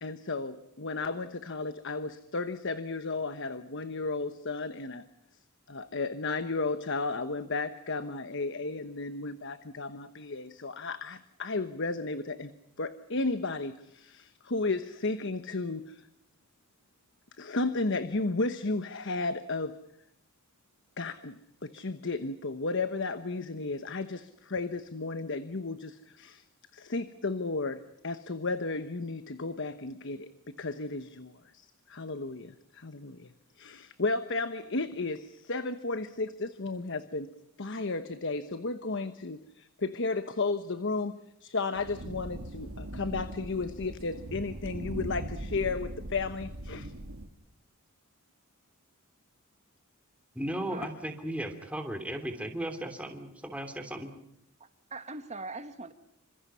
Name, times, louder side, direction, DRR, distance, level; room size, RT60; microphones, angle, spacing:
voice 1, 0.0-5.0 5.7-12.5 12.8-16.0 17.4-19.7 21.0-26.4 26.7-30.3 30.6-33.3 33.6-37.3 37.6-46.9 50.8-50.9, left 3 dB, 55° left, 11 dB, 1.1 m, -34 dB
sound 1, 41.7-47.3, right 1 dB, 70° right, 2.2 m, -40 dB
voice 2, 50.3-54.1, right 1 dB, 5° right, 5 dB, 3.1 m, -36 dB
voice 3, 54.6-55.9, right 3 dB, 30° right, 9 dB, 1.8 m, -41 dB
28.5 x 26.0 x 5.7 m, 0.74 s
head